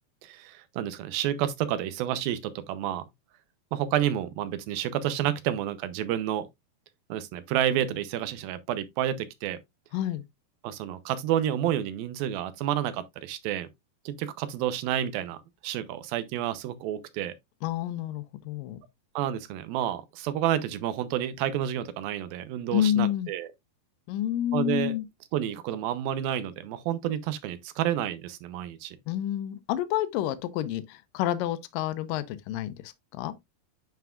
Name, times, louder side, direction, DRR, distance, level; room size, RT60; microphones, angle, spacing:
voice 1, 0.2-3.1 3.7-6.5 7.1-9.6 10.6-13.7 14.1-17.3 19.2-23.5 24.5-24.9 25.3-29.0, right 11 dB, 85° right, 2.6 m, -30 dB
voice 2, 9.9-10.2 17.6-18.8 22.7-23.3 24.1-25.1 29.1-33.3, left 11 dB, 80° left, 2.3 m, -29 dB
9.4 x 5.7 x 2.4 m
omnidirectional pair, 4.2 m